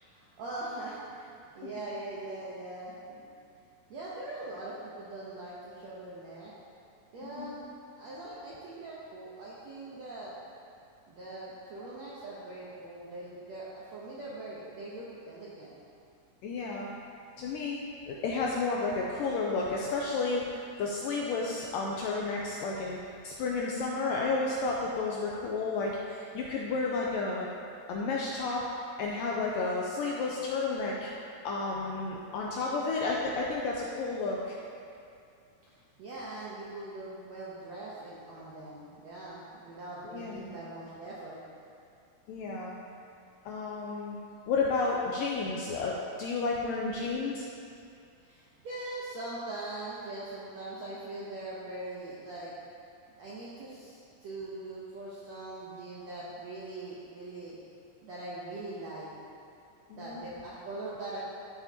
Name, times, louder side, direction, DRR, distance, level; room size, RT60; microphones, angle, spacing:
voice 1, 0.1-3.2 3.9-6.5 7.1-7.6 8.0-10.3 11.1-15.8 35.7-41.4 48.2-52.5 53.2-57.6 58.0-59.1 60.0-61.2, right 2 dB, 70° right, -7 dB, 1.6 m, -42 dB
voice 2, 7.2-7.5 16.4-16.9 17.4-17.8 18.1-23.0 23.2-27.5 27.9-28.7 29.0-31.1 31.4-34.6 40.1-40.5 42.3-42.8 43.5-44.2 44.5-47.5 59.9-60.2, left 3 dB, 85° left, -3 dB, 2.0 m, -32 dB
13.0 x 8.1 x 2.9 m, 2.5 s
omnidirectional pair, 4.6 m